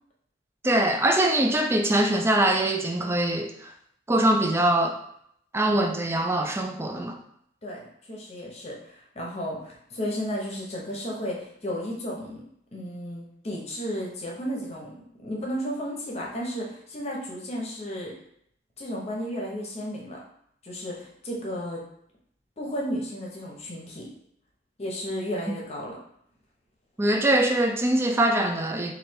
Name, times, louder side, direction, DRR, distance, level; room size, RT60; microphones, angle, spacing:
voice 1, 0.6-3.7 4.1-5.0 5.5-7.2 27.0-28.9, right 1 dB, 15° right, 3 dB, 0.3 m, -23 dB
voice 2, 7.6-12.4 12.7-14.9 15.2-18.1 18.8-20.2 20.6-21.8 22.6-24.1 24.8-26.0, equal, 35° left, -2 dB, 0.9 m, -33 dB
3.2 x 2.7 x 4.4 m, 0.70 s
head